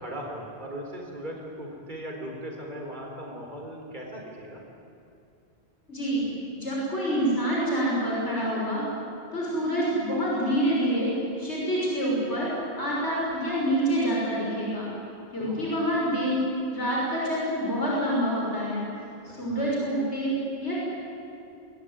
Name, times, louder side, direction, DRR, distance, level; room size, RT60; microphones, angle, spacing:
voice 1, 0.0-4.6 7.1-7.2 15.4-15.7 19.3-19.6, equal, 45° right, 0 dB, 4.4 m, -38 dB
voice 2, 5.9-6.3 6.6-8.8 9.3-11.1 11.4-12.5 12.8-14.9 15.3-16.4 16.7-18.8 19.2-20.7, equal, 90° left, -5 dB, 6.4 m, -27 dB
26.5 x 21.0 x 9.5 m, 2.6 s
omnidirectional pair, 1.1 m